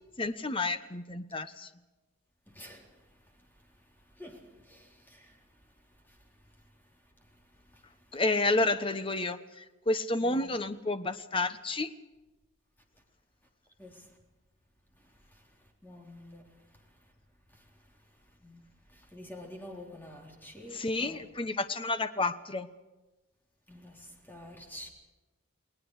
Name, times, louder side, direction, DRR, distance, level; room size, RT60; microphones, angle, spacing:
voice 1, 0.2-1.7 8.1-12.0 20.7-22.7, left 2 dB, 25° left, 1.1 m, -30 dB
voice 2, 4.7-5.2 10.2-10.5 13.8-14.0 15.8-16.4 18.4-18.6 19.1-21.2 23.7-24.9, left 1 dB, 10° left, 3.7 m, -47 dB
29.5 x 19.5 x 4.9 m
head